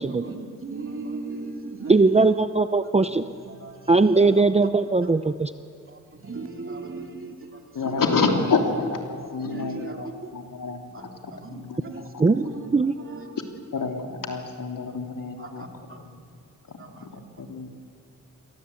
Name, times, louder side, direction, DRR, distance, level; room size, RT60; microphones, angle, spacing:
voice 1, 0.0-2.4 3.0-4.4 5.0-5.2 5.9-8.2 9.4-10.3 10.9-11.0 11.3-13.3 15.4-16.0 16.8-17.2, right 3 dB, 40° right, 2 dB, 2.7 m, -38 dB
voice 2, 1.9-3.2 3.9-5.5 12.2-12.5 12.7-12.9, right 3 dB, 20° right, 10 dB, 0.6 m, -19 dB
voice 3, 7.7-12.3 13.7-15.7 16.7-17.7, left 4 dB, 80° left, 3 dB, 3.1 m, -28 dB
28.5 x 22.0 x 8.4 m, 2.2 s
wide cardioid pair, 165°, 32 cm